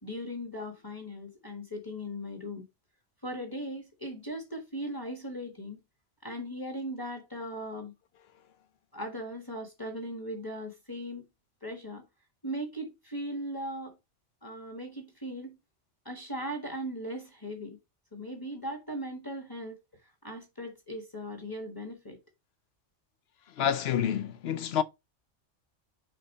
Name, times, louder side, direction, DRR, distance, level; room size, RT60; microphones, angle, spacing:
voice 1, 0.0-2.6 3.2-5.8 6.2-7.9 8.9-11.2 11.6-12.0 12.4-13.9 14.4-15.6 16.0-17.8 18.1-19.8 20.2-22.2, equal, 20° left, 1.6 m, -38 dB
voice 2, 23.6-24.8, left 9 dB, 65° left, 0.8 m, -28 dB
5.1 x 4.0 x 5.4 m
omnidirectional pair, 1.2 m